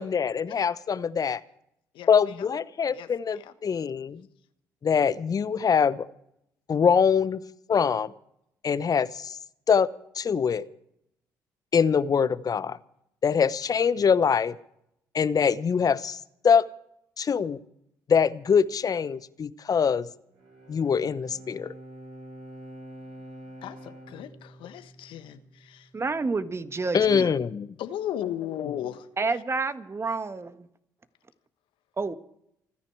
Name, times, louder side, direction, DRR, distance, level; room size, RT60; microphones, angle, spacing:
voice 1, 0.0-1.4 2.1-4.2 4.8-6.1 6.7-7.4 7.7-8.1 8.6-9.4 9.7-9.9 10.2-10.7 11.7-12.8 13.2-14.6 15.1-16.2 16.4-16.6 17.2-17.6 18.1-20.1 20.7-21.7 26.9-27.7, left 6 dB, 40° left, 16 dB, 1.0 m, -23 dB
voice 2, 1.9-2.5 2.9-3.5 23.6-25.9 27.8-29.1, left 11 dB, 65° left, 11 dB, 1.3 m, -36 dB
Bowed string instrument, 20.3-25.8, right 1 dB, 70° right, 3.8 m, -46 dB
voice 3, 25.9-27.3 29.2-30.7 32.0-32.1, right 3 dB, 30° right, 11 dB, 1.5 m, -29 dB
28.0 x 10.0 x 4.8 m, 0.75 s
hypercardioid pair, 50°, 9 cm